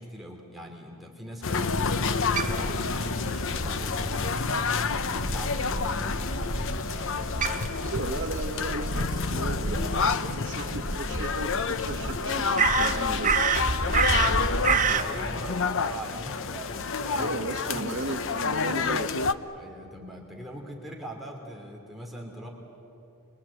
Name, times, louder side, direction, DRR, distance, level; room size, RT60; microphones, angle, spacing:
voice 1, 0.0-4.4 5.1-7.9 14.1-17.4 17.7-17.8 19.5-22.5, right 1 dB, ahead, -1 dB, 2.8 m, -42 dB
sound 1, 1.4-19.3, left 5 dB, 60° left, 0.8 m, -29 dB
Crow, 1.6-15.0, right 4 dB, 35° right, 1.0 m, -30 dB
voice 2, 7.8-13.4 17.2-19.2, right 2 dB, 55° right, 6 dB, 1.4 m, -35 dB
29.0 x 23.0 x 8.5 m, 3.0 s
head